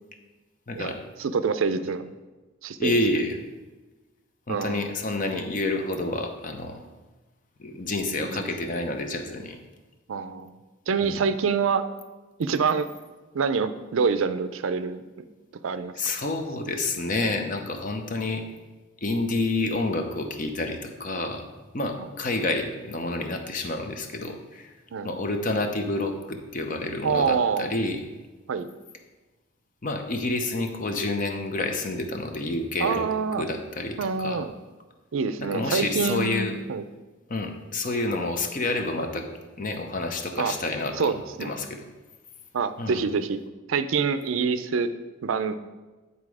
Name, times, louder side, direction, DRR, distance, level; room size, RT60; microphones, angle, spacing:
voice 1, 0.7-1.0 2.8-3.4 4.5-6.8 7.6-9.6 11.0-11.2 16.0-18.4 19.0-21.4 21.7-24.7 25.0-28.0 29.8-33.1 33.4-34.4 35.4-36.6 37.3-39.3 39.6-41.8 42.8-43.0, left 2 dB, 40° left, 5 dB, 0.7 m, -29 dB
voice 2, 1.2-2.0 2.6-3.0 4.5-4.9 8.2-8.4 10.1-10.5 10.9-11.8 12.4-12.9 13.3-15.0 15.6-15.9 22.0-22.1 24.9-25.2 27.0-27.8 28.5-28.7 32.8-33.5 34.0-34.5 35.1-36.9 40.4-40.5 41.0-41.5 42.5-43.4 43.7-44.9 45.2-45.5, right 5 dB, 75° right, 11 dB, 0.4 m, -26 dB
9.6 x 4.1 x 4.8 m, 1.2 s
head